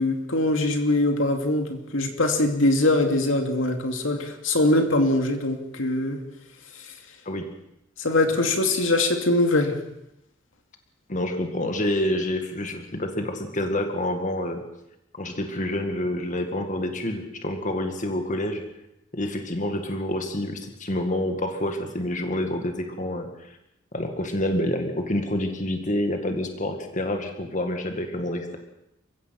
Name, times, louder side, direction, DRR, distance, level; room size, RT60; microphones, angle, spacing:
voice 1, 0.0-6.2 8.0-9.8, left 2 dB, 85° left, 4 dB, 2.6 m, -22 dB
voice 2, 11.1-14.6 15.1-18.6 19.1-23.6 23.9-28.6, left 1 dB, 40° left, 5 dB, 2.1 m, -28 dB
29.0 x 15.5 x 6.0 m, 0.84 s
head